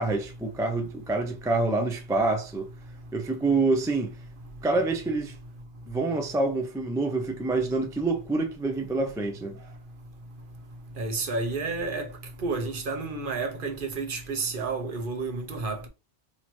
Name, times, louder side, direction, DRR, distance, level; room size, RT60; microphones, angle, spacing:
voice 1, 0.0-2.7 3.1-4.1 4.6-5.3 5.9-9.6, right 3 dB, 5° right, 0.3 m, -26 dB
voice 2, 11.0-12.1 12.4-15.9, right 3 dB, 55° right, 1.0 m, -30 dB
2.9 x 2.9 x 4.3 m
omnidirectional pair, 1.1 m